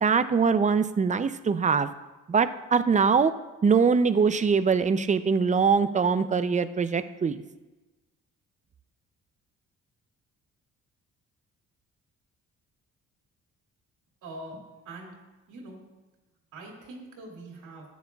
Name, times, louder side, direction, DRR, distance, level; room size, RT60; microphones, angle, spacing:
voice 1, 0.0-1.9 2.3-3.3 3.6-7.4, right 5 dB, 25° right, 12 dB, 0.5 m, -23 dB
voice 2, 14.2-15.1 15.5-15.8 16.5-17.8, right 2 dB, 85° right, -1 dB, 2.5 m, -43 dB
13.5 x 9.4 x 2.3 m, 1.1 s
cardioid pair, 90°, 30 cm